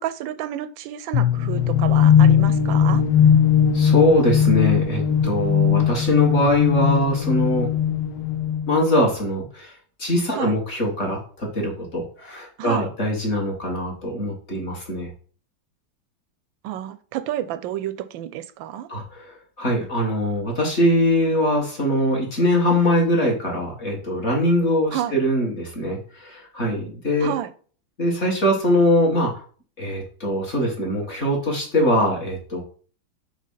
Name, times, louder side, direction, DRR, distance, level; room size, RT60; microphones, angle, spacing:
voice 1, 0.0-3.0 10.3-10.6 12.6-12.9 16.6-18.9 24.9-25.2 27.2-27.5, right 12 dB, 75° right, 1.2 m, -30 dB
sound 1, 1.1-8.9, left 8 dB, 80° left, 1.5 m, -19 dB
voice 2, 3.7-7.7 8.7-9.7 10.0-15.1 18.9-19.2 19.6-27.3 28.0-29.3 29.8-32.6, left 1 dB, 35° left, 1.9 m, -22 dB
5.0 x 3.9 x 5.6 m
omnidirectional pair, 2.2 m